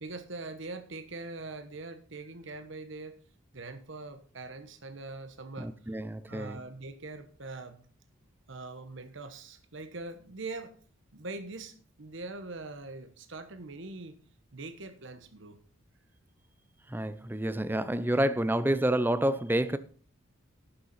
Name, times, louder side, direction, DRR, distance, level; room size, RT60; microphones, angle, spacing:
voice 1, 0.0-3.2 3.5-6.0 6.3-7.8 8.5-10.7 11.1-14.2 14.5-15.6, right 3 dB, 65° right, 1.1 m, -42 dB
voice 2, 5.6-6.6 16.9-19.8, right 1 dB, 10° right, 0.5 m, -28 dB
11.5 x 6.8 x 5.6 m
head